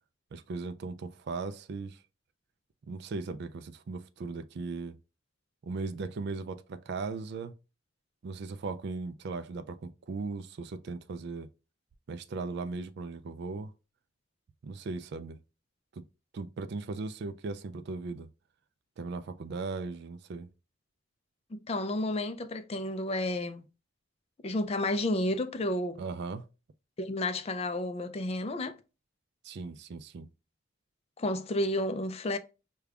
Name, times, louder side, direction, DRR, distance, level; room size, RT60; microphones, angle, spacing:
voice 1, 0.3-2.0 2.9-5.0 5.6-7.5 8.2-11.5 12.1-13.7 14.6-15.4 16.0-16.1 16.3-18.3 19.0-20.5 26.0-26.4 29.4-30.3, right 4 dB, 55° right, 0.3 m, -38 dB
voice 2, 21.5-23.6 24.4-26.0 27.0-28.8 31.2-32.4, left 1 dB, 30° left, 0.4 m, -31 dB
5.0 x 2.3 x 2.3 m
head